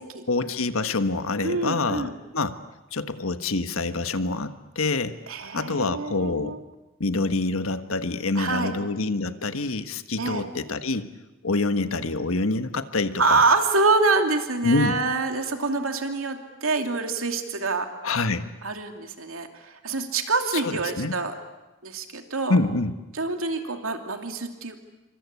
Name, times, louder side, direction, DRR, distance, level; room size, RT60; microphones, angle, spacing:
voice 1, 0.3-2.6 2.9-5.2 5.5-6.6 7.0-11.1 11.4-13.4 14.6-14.9 18.0-18.5 20.5-21.1 22.5-22.9, left 3 dB, 90° left, 10 dB, 1.4 m, -26 dB
voice 2, 1.4-2.1 5.3-6.6 8.4-8.8 10.2-10.4 13.2-17.9 18.6-21.3 21.8-22.6 23.1-24.8, right 3 dB, 90° right, 5 dB, 2.8 m, -26 dB
27.0 x 25.0 x 8.4 m, 1.0 s
head